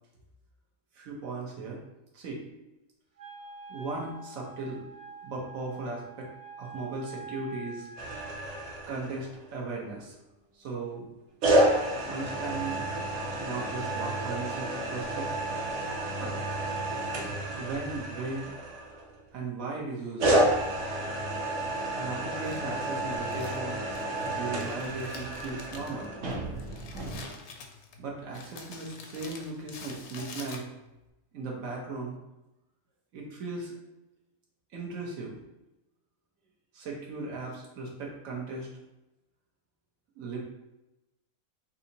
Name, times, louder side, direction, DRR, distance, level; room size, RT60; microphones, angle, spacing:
voice 1, 0.9-1.8 2.1-2.4 3.7-4.8 5.2-6.3 6.6-7.9 8.9-10.1 10.5-11.1 12.0-12.8 13.4-15.3 16.1-16.4 17.5-18.6 19.3-20.4 22.0-23.8 24.2-26.1 28.0-30.6 31.3-32.2 33.1-33.8 34.7-35.4 36.7-38.7 40.2-40.4, right 3 dB, 85° right, -2 dB, 1.4 m, -37 dB
Wind instrument woodwind instrument, 3.2-8.6, right 4 dB, 50° right, 0.4 m, -46 dB
sound 1, 8.0-9.5 11.4-19.2 20.2-27.2, right 1 dB, 70° right, 1.1 m, -30 dB
Crumpling crinkling, 22.4-31.0, left 4 dB, 65° left, 0.8 m, -47 dB
5.5 x 2.8 x 2.7 m, 0.96 s
omnidirectional pair, 1.4 m